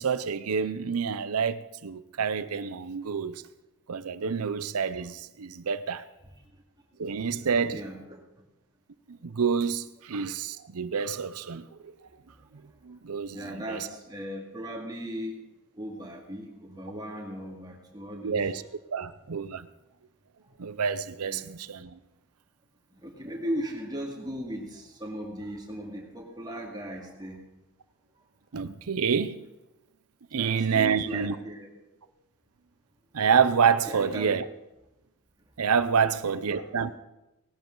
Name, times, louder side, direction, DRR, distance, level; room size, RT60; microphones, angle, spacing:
voice 1, 0.0-3.4 3.9-6.0 7.0-7.8 9.1-11.9 12.8-13.8 18.2-18.6 18.9-19.7 20.6-22.0 28.5-29.4 30.3-31.4 33.1-34.5 35.6-36.9, right 6 dB, 90° right, 0.6 m, -28 dB
voice 2, 7.7-8.2 13.3-15.4 15.8-18.5 21.2-21.5 23.0-27.4 30.3-31.7 33.8-34.3 36.0-36.6, equal, 20° right, 2.2 m, -37 dB
18.0 x 12.0 x 3.9 m
head